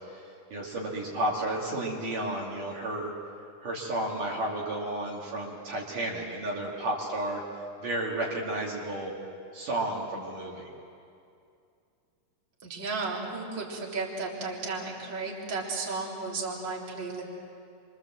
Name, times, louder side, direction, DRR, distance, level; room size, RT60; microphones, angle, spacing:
voice 1, 0.1-3.1 3.6-9.1 9.5-10.7, right 1 dB, 55° right, -4 dB, 3.8 m, -32 dB
voice 2, 12.6-17.2, right 3 dB, 30° right, -3 dB, 3.7 m, -34 dB
28.5 x 24.5 x 7.7 m, 2.5 s
omnidirectional pair, 4.6 m